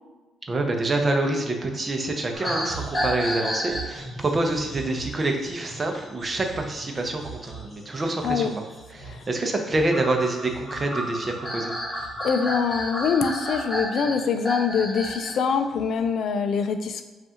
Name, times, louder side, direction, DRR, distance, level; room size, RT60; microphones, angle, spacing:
voice 1, 0.5-8.5 8.9-11.7, right 2 dB, 30° right, 3 dB, 0.7 m, -26 dB
sound 1, 2.3-15.3 15.7-16.0, equal, 15° left, 1.3 m, -33 dB
voice 2, 12.2-17.0, left 6 dB, 65° left, 8 dB, 0.4 m, -24 dB
5.3 x 2.5 x 2.8 m, 1.3 s
cardioid pair, 90°, 0 cm